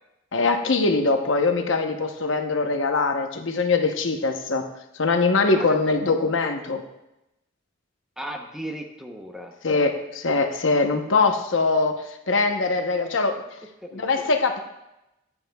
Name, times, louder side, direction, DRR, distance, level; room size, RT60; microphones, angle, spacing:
voice 1, 0.3-4.7 5.0-6.8 9.6-12.0 12.3-13.3 13.9-14.6, left 3 dB, 70° left, 5 dB, 0.9 m, -22 dB
voice 2, 5.2-5.8 8.2-9.5 13.8-14.1, right 1 dB, 5° right, 2 dB, 0.8 m, -36 dB
14.5 x 9.7 x 2.3 m, 0.92 s
head